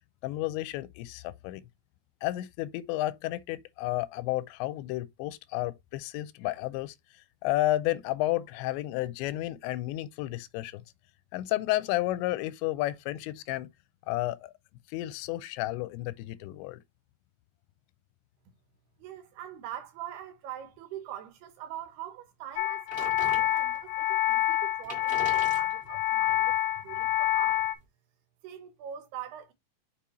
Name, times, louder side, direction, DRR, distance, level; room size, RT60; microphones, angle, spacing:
voice 1, 0.2-1.6 2.2-7.0 7.4-10.8 11.3-13.7 14.1-14.5 14.9-16.8, left 16 dB, 90° left, 2.9 m, -31 dB
voice 2, 19.0-26.6 26.8-27.7 28.4-29.5, right 11 dB, 75° right, 2.8 m, -43 dB
sound 1, 22.6-27.8, left 13 dB, 70° left, 3.0 m, -27 dB
sound 2, 22.9-24.0 24.5-24.6 24.8-27.8, right 1 dB, 25° right, 1.4 m, -44 dB
7.0 x 5.0 x 2.9 m
omnidirectional pair, 5.1 m